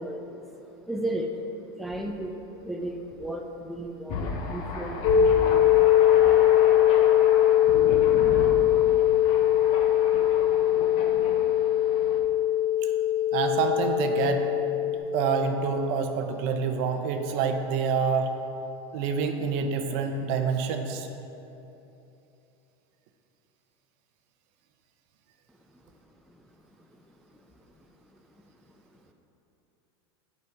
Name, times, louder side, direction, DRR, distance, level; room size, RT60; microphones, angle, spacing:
voice 1, 0.0-1.4 1.8-5.8 6.2-6.6 26.3-28.2 28.9-29.1, right 1 dB, ahead, 1 dB, 0.4 m, -36 dB
Thunder, 4.1-12.2, left 3 dB, 45° left, 0.9 m, -34 dB
sound 1, 5.0-15.0, left 11 dB, 85° left, 0.9 m, -21 dB
voice 2, 13.3-14.5 15.1-18.3 18.9-21.1, right 5 dB, 55° right, 5 dB, 0.7 m, -27 dB
8.4 x 5.3 x 4.6 m, 2.9 s
supercardioid pair, 140°, 13 cm